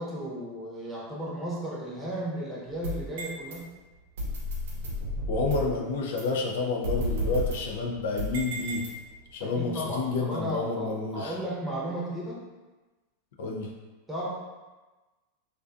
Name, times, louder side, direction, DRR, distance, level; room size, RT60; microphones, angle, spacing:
voice 1, 0.0-3.6 9.4-12.4 14.1-14.3, right 1 dB, 5° right, -6 dB, 0.8 m, -34 dB
sound 1, 2.7-3.5 4.2-5.8 6.2-6.3 6.8-9.3, equal, 75° right, 0.6 m, -32 dB
voice 2, 5.3-8.9 9.3-11.4 13.4-13.7, left 4 dB, 75° left, 0 dB, 0.4 m, -29 dB
2.4 x 2.2 x 2.4 m, 1.2 s
hypercardioid pair, 110°, 0 cm